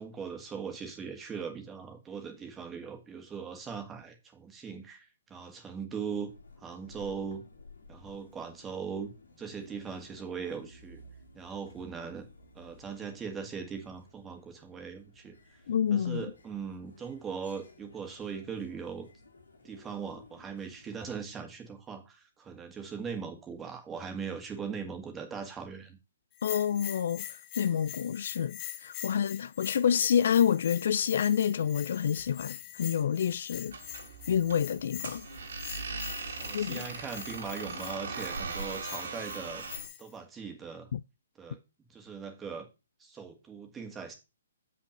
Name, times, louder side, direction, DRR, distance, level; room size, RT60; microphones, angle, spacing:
voice 1, 0.0-6.3 6.6-7.4 7.9-9.1 9.4-11.0 11.3-12.3 12.5-15.4 15.9-19.1 19.6-26.0 36.4-39.6 40.0-40.9 41.4-41.6 41.9-42.7 43.0-44.1, right 6 dB, 15° right, 1.9 m, -40 dB
sound 1, 6.1-21.2, left 2 dB, 80° left, 2.6 m, -56 dB
voice 2, 15.7-16.2 26.4-27.3 27.6-33.8 34.3-35.3 36.5-36.8 40.9-41.0, left 8 dB, 60° left, 0.4 m, -28 dB
Bell, 26.4-40.1, left 13 dB, 35° left, 1.0 m, -44 dB
sound 2, 33.7-39.9, right 4 dB, 65° right, 3.0 m, -39 dB
7.5 x 5.9 x 6.5 m
figure-of-eight pair, 130°, 0 cm